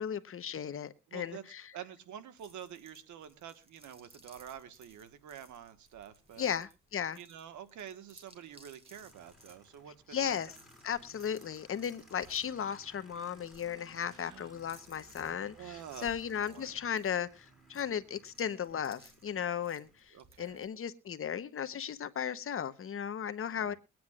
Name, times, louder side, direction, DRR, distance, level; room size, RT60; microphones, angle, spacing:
voice 1, 0.0-1.6 6.4-7.2 10.1-10.5 10.8-23.7, left 8 dB, 45° left, 1.0 m, -36 dB
voice 2, 1.1-1.4 1.7-6.5 7.2-10.4 14.1-14.5 15.6-16.1 16.4-16.9 20.1-20.6 23.5-23.8, right 9 dB, 75° right, 1.5 m, -48 dB
sound 1, 2.4-20.7, right 1 dB, 20° right, 3.2 m, -61 dB
Aircraft, 8.9-20.1, equal, ahead, 5.1 m, -60 dB
22.5 x 9.4 x 2.4 m
cardioid pair, 90°, 30 cm